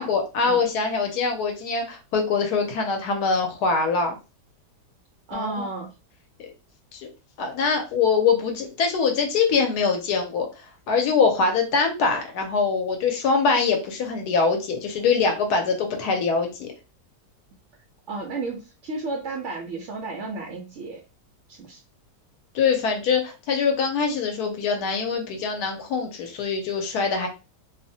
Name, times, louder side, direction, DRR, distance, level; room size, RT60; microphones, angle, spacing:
voice 1, 0.0-4.2 5.3-5.6 6.4-6.5 6.9-7.1 7.4-16.7 22.5-27.3, left 5 dB, 70° left, 4 dB, 1.1 m, -23 dB
voice 2, 5.3-5.9 18.1-21.0 21.5-21.8, right 3 dB, 80° right, 1 dB, 0.6 m, -32 dB
2.8 x 2.0 x 2.6 m, 0.31 s
omnidirectional pair, 1.9 m